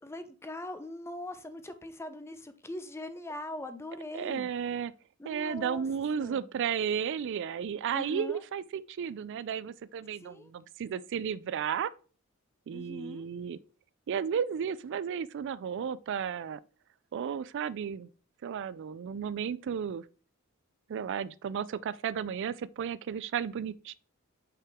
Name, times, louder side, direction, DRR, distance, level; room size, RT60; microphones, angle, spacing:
voice 1, 0.0-4.5 5.2-5.9 6.2-6.5 7.9-8.4 10.1-10.5 12.7-13.3, left 1 dB, 10° left, 0.5 m, -41 dB
voice 2, 4.1-4.9 5.2-11.9 12.7-13.6 14.1-16.6 17.1-18.1 18.4-20.0 20.9-23.9, right 7 dB, 55° right, 0.3 m, -33 dB
5.8 x 4.9 x 3.5 m
head